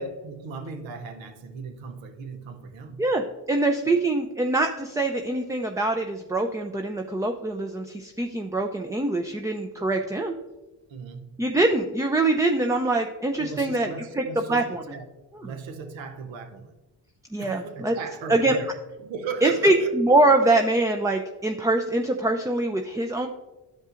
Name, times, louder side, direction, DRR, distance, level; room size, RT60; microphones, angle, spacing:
voice 1, 0.0-3.0 10.9-11.3 13.4-15.1 15.4-16.7 17.4-18.7 19.0-19.9, right 5 dB, 85° right, 6 dB, 0.8 m, -36 dB
voice 2, 3.0-10.3 11.4-14.8 15.3-15.5 17.3-18.0 18.3-18.6 19.4-23.3, right 2 dB, 10° right, 4 dB, 0.4 m, -24 dB
12.0 x 5.3 x 2.5 m, 1.1 s
supercardioid pair, 60°, 44 cm